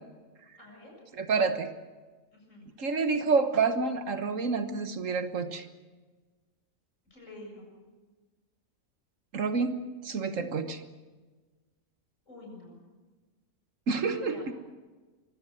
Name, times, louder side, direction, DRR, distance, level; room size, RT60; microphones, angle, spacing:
voice 1, 0.6-1.0 2.3-2.7 7.1-7.7 12.3-12.8 14.1-14.5, left 1 dB, 65° left, 0 dB, 7.8 m, -48 dB
voice 2, 1.1-1.7 2.8-5.6 9.3-9.7 10.0-10.8 13.9-14.4, right 4 dB, 70° right, 9 dB, 1.7 m, -28 dB
23.5 x 16.0 x 7.6 m, 1.3 s
omnidirectional pair, 1.4 m